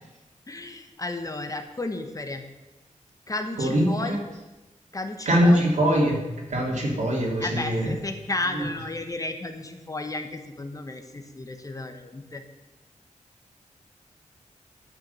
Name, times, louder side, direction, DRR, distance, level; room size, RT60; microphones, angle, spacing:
voice 1, 0.5-2.4 3.3-4.2 4.9-5.8 7.4-12.4, left 2 dB, 25° left, 7 dB, 1.1 m, -33 dB
voice 2, 3.6-4.2 5.3-6.2 6.5-7.9, equal, 65° right, -1 dB, 3.0 m, -22 dB
11.5 x 6.9 x 6.9 m, 1.0 s
wide cardioid pair, 110°, 13 cm